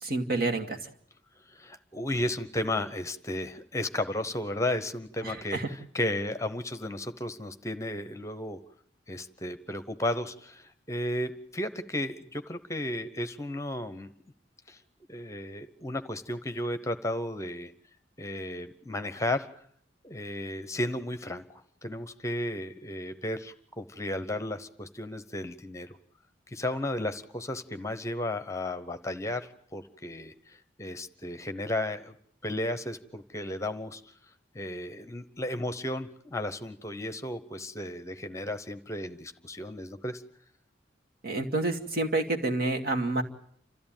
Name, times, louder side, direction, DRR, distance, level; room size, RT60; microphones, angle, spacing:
voice 1, 0.0-0.9 5.2-5.7 41.2-43.2, right 2 dB, 55° right, 3 dB, 2.3 m, -29 dB
voice 2, 1.5-8.6 9.1-14.1 14.7-14.8 15.1-17.7 18.2-19.5 20.0-26.0 26.5-32.1 32.4-34.1 34.5-40.2, left 1 dB, 15° left, 10 dB, 0.9 m, -34 dB
30.0 x 14.0 x 9.0 m, 0.67 s
head